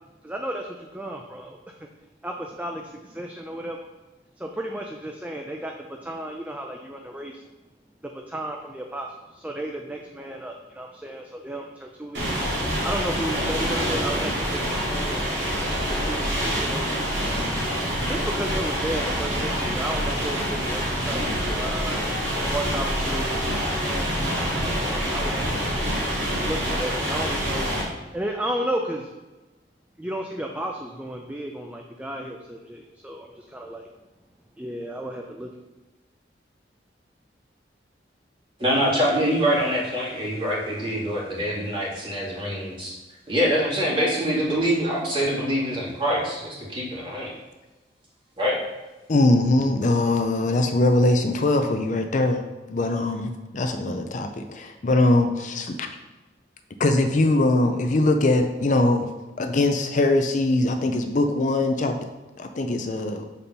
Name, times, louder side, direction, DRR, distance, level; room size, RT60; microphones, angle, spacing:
voice 1, 0.2-1.9 2.2-3.8 4.4-7.4 8.0-12.3 12.8-14.5 14.8-15.2 15.9-17.2 18.1-22.1 22.5-23.5 23.8-25.6 26.4-27.7 28.1-29.1 30.0-33.9 34.6-35.5, right 1 dB, 10° right, 2 dB, 0.5 m, -33 dB
sound 1, 12.1-27.8, equal, 90° right, 2.7 m, -26 dB
voice 2, 38.6-43.0 43.3-47.3 48.4-48.6, equal, 30° right, -6 dB, 2.2 m, -24 dB
voice 3, 49.1-52.4 52.7-55.9 56.8-59.1 59.4-62.0 62.4-63.2, left 2 dB, 45° left, 6 dB, 0.5 m, -21 dB
7.0 x 4.3 x 5.3 m, 1.1 s
head